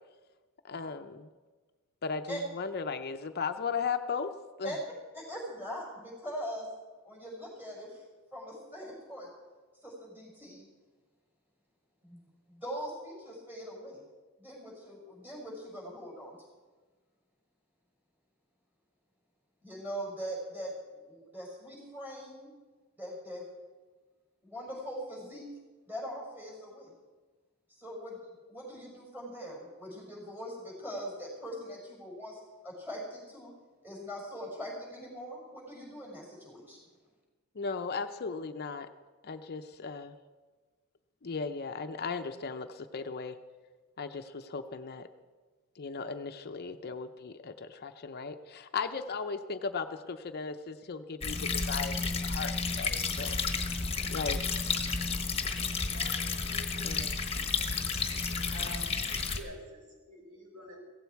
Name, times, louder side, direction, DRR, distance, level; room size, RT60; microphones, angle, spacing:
voice 1, 0.6-1.3 2.0-4.3 4.6-4.7 37.5-38.9 39.2-40.2 41.2-43.4 44.0-45.1 45.8-53.4 54.1-54.4 56.8-57.1, left 5 dB, 45° left, 9 dB, 0.6 m, -36 dB
voice 2, 5.1-6.7 7.0-8.0 8.3-9.3 9.8-10.7 12.0-12.2 12.5-14.0 14.4-16.4 19.6-22.5 23.0-23.4 24.4-25.5 25.9-26.9 27.8-28.2 28.5-33.5 33.8-36.8, equal, 10° right, -2 dB, 5.8 m, -41 dB
sound 1, 51.2-59.4, left 4 dB, 25° left, 1.2 m, -32 dB
voice 3, 55.6-57.0 58.5-59.0 59.3-60.8, equal, 65° right, -1 dB, 5.2 m, -48 dB
16.5 x 15.5 x 4.6 m, 1.3 s
head